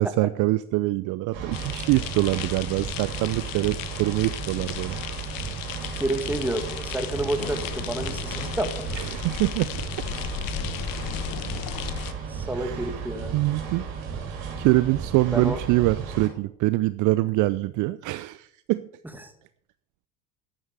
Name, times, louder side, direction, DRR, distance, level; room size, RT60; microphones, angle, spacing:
voice 1, 0.0-5.0 8.9-9.7 12.5-13.0 13.3-13.9 14.6-18.8, right 18 dB, 45° right, 17 dB, 0.5 m, -24 dB
sound 1, 1.3-16.3, right 6 dB, 70° right, 3.5 m, -35 dB
sound 2, 1.5-12.1, left 11 dB, 50° left, 1.2 m, -35 dB
voice 2, 6.0-8.8 12.3-13.4 15.3-15.6 19.2-19.3, right 1 dB, 5° right, 7 dB, 2.0 m, -29 dB
11.5 x 8.8 x 6.7 m, 0.69 s
hypercardioid pair, 70°, 42 cm